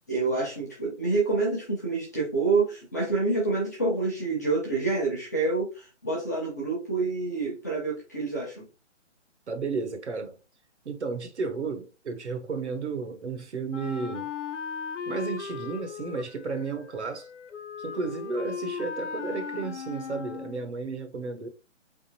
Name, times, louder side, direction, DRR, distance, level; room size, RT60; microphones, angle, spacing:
voice 1, 0.1-8.7, right 3 dB, 15° left, 0.8 m, -27 dB
voice 2, 9.5-10.4 10.8-14.3 15.1-17.3 17.8-21.5, right 4 dB, 70° right, 1.1 m, -33 dB
Wind instrument woodwind instrument, 13.7-20.7, left 6 dB, 80° left, 0.7 m, -37 dB
3.8 x 3.6 x 2.7 m
hypercardioid pair, 175°, 36 cm